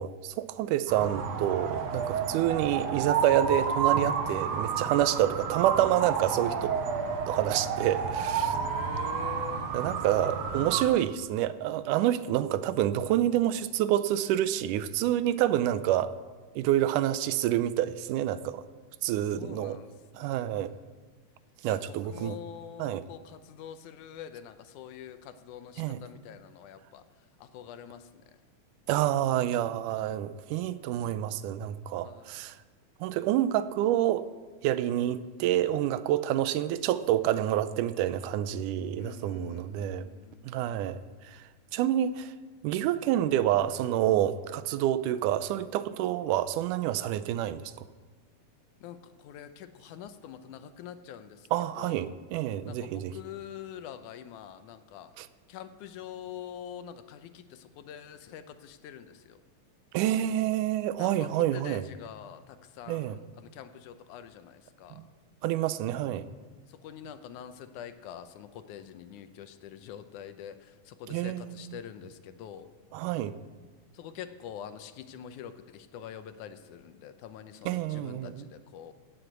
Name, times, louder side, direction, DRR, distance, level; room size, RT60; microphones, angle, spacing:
voice 1, 0.0-6.8 7.3-8.6 9.7-16.1 16.6-18.6 19.0-19.8 20.2-20.7 21.6-22.4 22.8-23.1 25.8-26.0 28.9-32.5 33.0-34.3 34.6-40.1 40.5-41.0 41.3-41.4 41.7-42.3 42.6-47.6 51.5-53.1 55.2-55.3 59.9-61.8 62.9-63.2 65.0-65.1 65.4-66.3 71.1-71.8 72.9-73.3 77.7-78.5, right 12 dB, 85° right, 14 dB, 2.1 m, -28 dB
sound 1, 0.9-10.8, right 6 dB, 65° right, 2.1 m, -30 dB
voice 2, 8.5-9.7 19.4-20.5 21.7-27.0 27.4-28.2 32.0-32.4 39.0-40.9 48.8-51.5 51.8-52.1 52.7-55.1 55.5-59.4 61.0-65.0 66.7-72.7 73.9-78.9, left 9 dB, 80° left, 10 dB, 2.2 m, -45 dB
16.0 x 7.9 x 8.0 m, 1.4 s
omnidirectional pair, 3.6 m